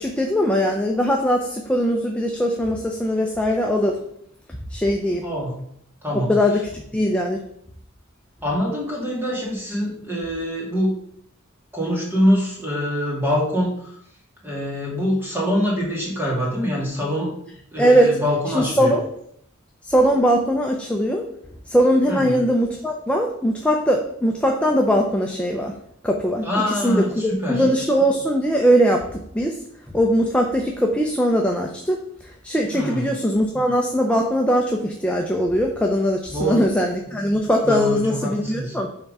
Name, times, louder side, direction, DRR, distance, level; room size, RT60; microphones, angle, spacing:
voice 1, 0.0-4.0 4.7-5.2 6.3-7.4 17.8-18.2 18.5-19.0 19.9-21.2 21.7-25.7 26.0-29.5 29.9-32.0 32.4-38.9, equal, 5° left, 1 dB, 0.5 m, -20 dB
voice 2, 5.2-5.5 6.0-6.3 8.4-10.9 11.7-13.9 14.4-17.3 17.7-18.9 22.1-22.4 26.4-27.6 32.7-33.0 36.3-36.6 37.6-38.8, equal, 10° right, -4 dB, 2.2 m, -24 dB
5.8 x 4.6 x 5.4 m, 0.70 s
head